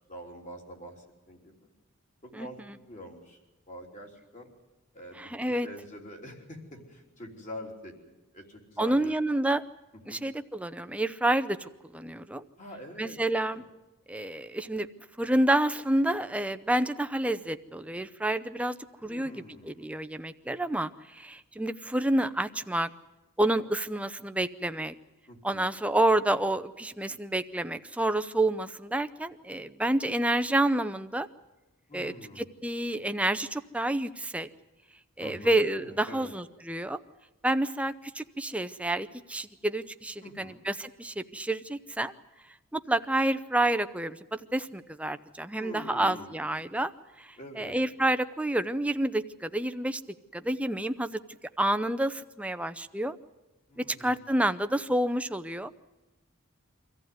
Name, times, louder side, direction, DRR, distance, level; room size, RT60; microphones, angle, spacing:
voice 1, 0.1-1.7 2.2-3.4 3.7-4.5 4.9-7.9 8.3-9.1 10.1-10.2 12.6-13.7 19.0-20.1 25.3-25.7 31.9-32.4 35.2-36.3 40.2-40.6 45.5-46.4 47.4-47.8 53.7-54.1, equal, 35° left, 2 dB, 3.4 m, -45 dB
voice 2, 5.2-5.7 8.8-9.6 10.1-12.4 13.0-13.6 14.1-14.9 15.2-18.8 19.0-22.9 23.4-24.9 25.4-31.3 31.9-34.5 35.2-37.0 37.4-42.1 42.7-46.9 47.2-50.0 50.3-51.2 51.6-53.2 53.8-55.7, right 1 dB, 5° right, 10 dB, 0.6 m, -29 dB
24.5 x 14.5 x 9.4 m, 1.1 s
head